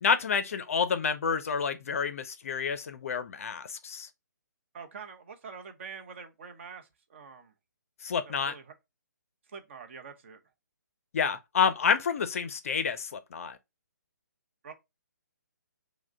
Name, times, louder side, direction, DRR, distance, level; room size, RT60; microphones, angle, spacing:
voice 1, 0.0-4.1 8.0-8.5 11.1-13.6, left 6 dB, 45° left, 0.5 m, -29 dB
voice 2, 4.7-7.5 8.3-8.7 9.5-10.4 14.6-14.7, right 6 dB, 40° right, 0.8 m, -45 dB
4.8 x 2.1 x 3.5 m
figure-of-eight pair, 135°, 10 cm